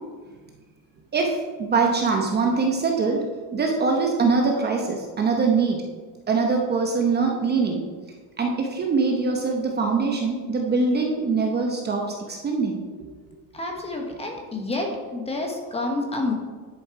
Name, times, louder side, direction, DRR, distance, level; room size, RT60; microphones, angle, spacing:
voice 1, 1.1-5.8 6.3-7.8 8.4-12.8, right 4 dB, 20° right, 1 dB, 0.9 m, -23 dB
voice 2, 13.5-16.3, left 2 dB, 15° left, 2 dB, 1.1 m, -29 dB
10.0 x 7.2 x 4.7 m, 1.4 s
cardioid pair, 165°, 44 cm